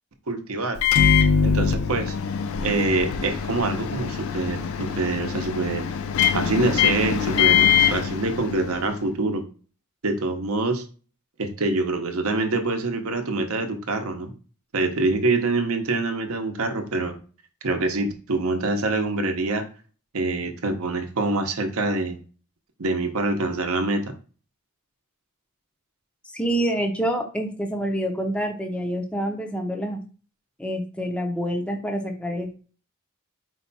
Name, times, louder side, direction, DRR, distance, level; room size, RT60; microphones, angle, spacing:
voice 1, 0.3-0.8 1.4-2.1 2.6-5.9 6.3-9.4 10.0-10.8 11.4-14.3 14.7-17.2 17.6-19.6 20.1-22.2 22.8-24.1, right 2 dB, 70° right, 6 dB, 0.7 m, -25 dB
Microwave oven, 0.8-8.9, left 7 dB, 65° left, 0.4 m, -23 dB
voice 2, 26.3-30.0 30.6-32.5, right 1 dB, 5° left, 3 dB, 0.5 m, -27 dB
4.6 x 2.2 x 3.9 m, 0.38 s
head